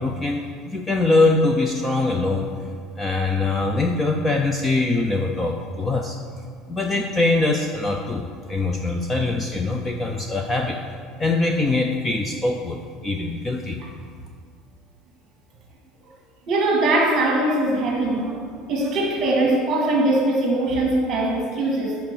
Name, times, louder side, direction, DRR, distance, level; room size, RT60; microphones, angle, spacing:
voice 1, 0.0-2.5 3.0-6.2 6.7-10.8 11.2-13.8, left 2 dB, 15° left, 2 dB, 0.4 m, -23 dB
voice 2, 16.5-18.4 18.7-22.0, right 2 dB, 30° right, -1 dB, 1.8 m, -21 dB
9.6 x 4.5 x 6.7 m, 2.1 s
cardioid pair, 175°, 0 cm